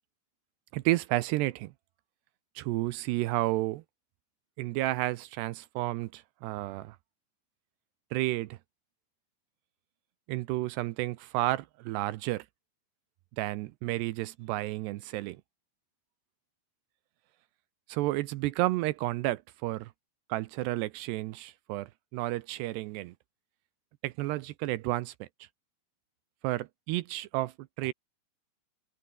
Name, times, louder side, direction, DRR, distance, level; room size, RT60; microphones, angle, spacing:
voice 1, 0.7-1.7 2.6-3.8 4.6-7.0 8.1-8.6 10.3-12.5 13.4-15.4 17.9-19.9 20.3-23.1 24.0-25.3 26.4-27.9, right 17 dB, 85° right, 2.6 m, -31 dB
omnidirectional pair, 5.5 m